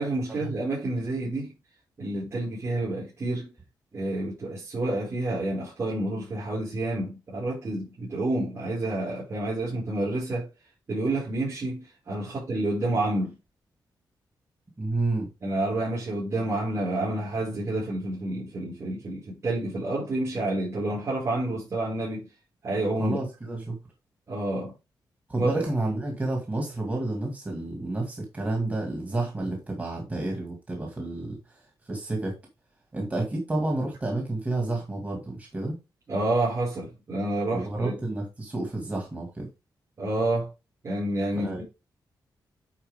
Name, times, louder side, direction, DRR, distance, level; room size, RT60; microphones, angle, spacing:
voice 1, 0.0-1.5 2.0-3.5 3.9-10.5 10.9-13.3 15.4-22.3 22.6-23.2 24.3-24.7 25.4-25.6 36.1-37.9 40.0-40.5 40.8-41.6, right 2 dB, 40° right, 5.4 m, -29 dB
voice 2, 14.8-15.3 23.0-23.8 25.3-32.4 32.9-35.8 37.5-39.5 41.3-41.6, right 2 dB, 20° right, 2.1 m, -30 dB
9.8 x 4.4 x 3.6 m
wide cardioid pair, 165°, 8 cm